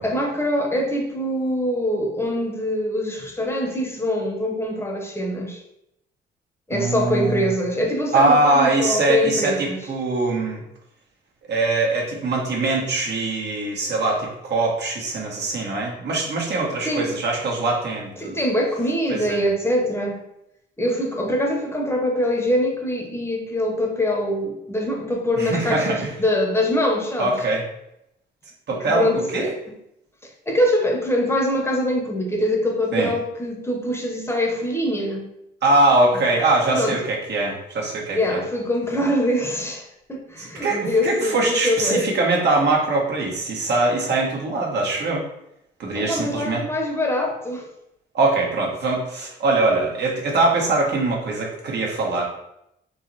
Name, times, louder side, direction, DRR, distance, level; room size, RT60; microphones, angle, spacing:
voice 1, 0.0-5.6 6.7-9.8 16.8-17.1 18.2-20.2 20.8-27.3 28.8-29.5 30.2-35.2 36.7-37.0 38.1-42.1 45.9-47.7, left 1 dB, 10° left, 1 dB, 1.0 m, -23 dB
voice 2, 6.7-7.5 8.1-10.6 11.5-18.3 19.1-19.4 25.4-26.1 27.2-27.6 28.7-29.5 32.9-33.1 35.6-38.4 40.4-45.2 45.8-46.6 48.1-52.2, right 2 dB, 60° right, -2 dB, 1.5 m, -22 dB
3.8 x 3.1 x 4.1 m, 0.81 s
cardioid pair, 90°, 20 cm